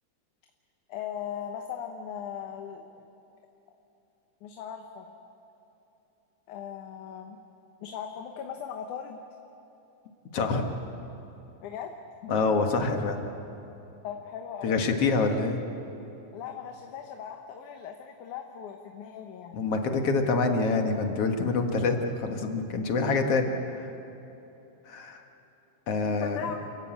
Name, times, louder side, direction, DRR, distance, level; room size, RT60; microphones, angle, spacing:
voice 1, 0.9-3.0 4.4-5.1 6.5-7.4 7.8-9.2 11.6-11.9 14.0-14.8 16.3-19.6 23.0-23.1 26.0-26.6, left 8 dB, 75° left, 4 dB, 2.5 m, -38 dB
voice 2, 10.3-10.7 12.3-13.2 14.6-15.6 19.5-23.5 24.9-25.2 25.9-26.4, left 3 dB, 55° left, 4 dB, 2.3 m, -26 dB
29.0 x 15.5 x 8.7 m, 3.0 s
omnidirectional pair, 3.7 m